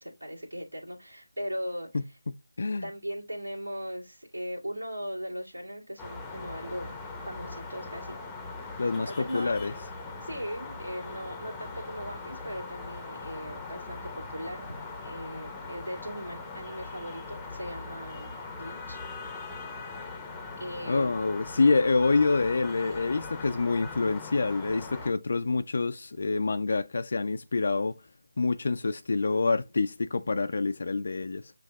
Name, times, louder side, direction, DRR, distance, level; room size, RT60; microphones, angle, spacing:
voice 1, 0.0-2.2 2.8-6.9 7.3-8.2 9.1-9.5 10.2-14.6 15.0-18.3 18.6-19.0 19.2-19.7 20.6-21.2, equal, 85° right, 1.8 m, -38 dB
voice 2, 2.3-2.9 8.8-9.7 20.9-27.9 28.4-31.5, left 3 dB, 55° left, 0.3 m, -27 dB
sound 1, 6.0-25.1, left 3 dB, 5° left, 0.7 m, -41 dB
7.4 x 2.7 x 2.3 m
figure-of-eight pair, 165°, 0 cm